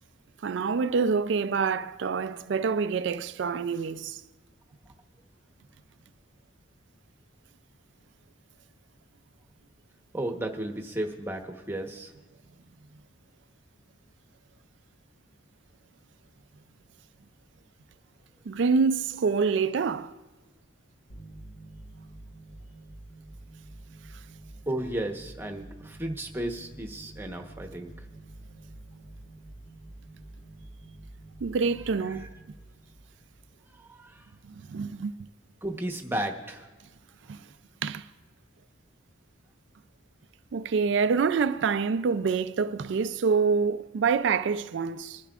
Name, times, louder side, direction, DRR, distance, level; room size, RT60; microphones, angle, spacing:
voice 1, 0.4-4.2 18.5-20.1 31.4-32.3 34.4-35.1 37.3-37.5 37.8-38.1 40.5-45.2, right 5 dB, 65° right, 0.4 m, -26 dB
voice 2, 10.1-12.1 24.7-28.1 32.1-32.3 33.7-34.3 35.6-36.7, right 1 dB, 10° right, 1.0 m, -34 dB
sound 1, 21.1-34.3, right 2 dB, 65° left, 1.4 m, -48 dB
27.5 x 11.5 x 2.4 m
head